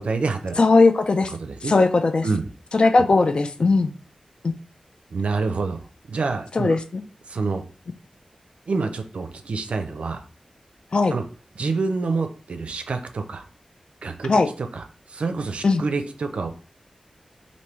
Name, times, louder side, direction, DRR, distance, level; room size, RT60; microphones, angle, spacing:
voice 1, 0.0-0.5 1.4-1.7 2.2-2.4 3.0-3.1 5.1-5.8 6.1-6.8 7.3-7.6 8.7-10.2 11.1-11.2 11.6-13.4 14.0-14.3 14.7-14.8 15.1-16.5, right 4 dB, 70° right, 7 dB, 0.4 m, -27 dB
voice 2, 0.6-1.3 1.6-2.3 2.7-3.9 4.4-4.5 6.5-7.0 10.9-11.2 14.3-14.5 15.6-15.8, left 3 dB, 50° left, 7 dB, 0.4 m, -18 dB
3.4 x 2.6 x 3.0 m, 0.38 s
wide cardioid pair, 105°, 2 cm